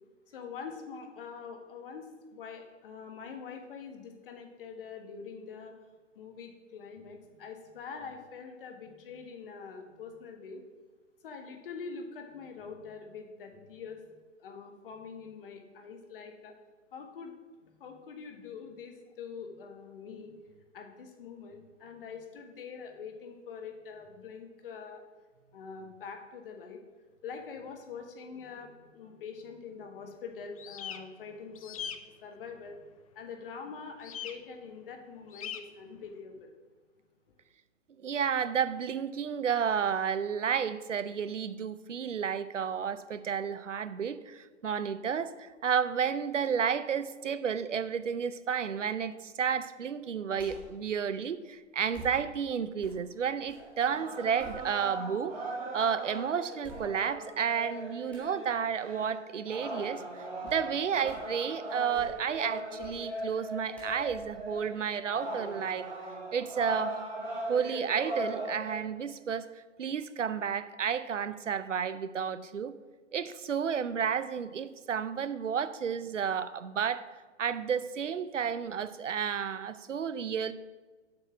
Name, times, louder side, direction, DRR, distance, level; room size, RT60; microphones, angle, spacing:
voice 1, 0.3-5.7 6.1-10.6 11.2-16.5 16.9-17.3 17.6-20.3 20.7-25.0 25.5-26.8 27.2-36.5, left 5 dB, 50° left, 4 dB, 1.5 m, -44 dB
sound 1, 30.6-31.0 31.5-32.0 34.0-34.3 35.3-35.6, left 8 dB, 30° left, 0.4 m, -39 dB
voice 2, 38.0-55.4 55.7-65.9 66.3-67.0 67.5-69.5 69.8-72.7 73.1-77.0 77.4-80.5, right 7 dB, 80° right, 14 dB, 0.7 m, -31 dB
sound 2, 50.4-50.8 51.9-53.7 54.1-55.2 55.7-55.8 56.6-57.3 58.1-58.4 60.4-60.7 61.0-61.4 61.8-62.4 62.8-63.1 63.7-65.4 65.8-65.9, left 1 dB, 5° left, 1.7 m, -51 dB
sound 3, 53.6-68.7, right 1 dB, 20° right, 3.0 m, -39 dB
7.7 x 6.1 x 5.9 m, 1.3 s
figure-of-eight pair, 125°, 37 cm